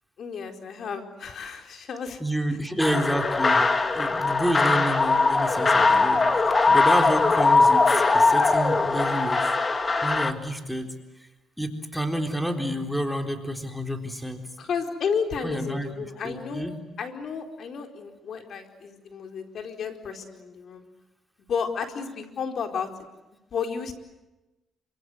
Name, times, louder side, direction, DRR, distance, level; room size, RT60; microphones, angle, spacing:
voice 1, 0.2-2.2 2.5-2.6 5.8-5.9 14.6-16.7 17.0-20.8 21.5-22.9 23.5-23.9, left 6 dB, 60° left, 4 dB, 4.5 m, -32 dB
voice 2, 2.2-3.7 3.9-9.5 10.0-10.9 11.6-14.5 15.4-15.9 16.2-16.7, equal, ahead, 4 dB, 3.9 m, -29 dB
sound 1, 2.8-10.3, left 3 dB, 30° left, 2.5 m, -21 dB
28.0 x 26.0 x 8.0 m, 1.0 s
cardioid pair, 90°, 0 cm